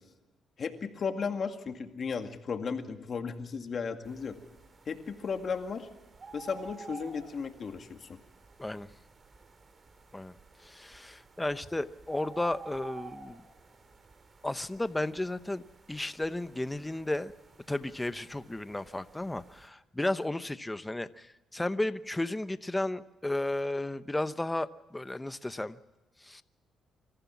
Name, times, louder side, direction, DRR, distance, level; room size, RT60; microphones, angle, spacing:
voice 1, 0.6-4.4 4.9-5.9 6.3-8.2, left 5 dB, 50° left, 6 dB, 2.1 m, -35 dB
sound 1, 4.0-19.7, right 4 dB, 40° right, 2.5 m, -52 dB
voice 2, 10.6-13.4 14.4-17.3 17.7-25.8 26.2-26.4, left 1 dB, 10° left, 13 dB, 0.9 m, -33 dB
25.5 x 14.5 x 7.2 m, 1.1 s
cardioid pair, 90°, 0 cm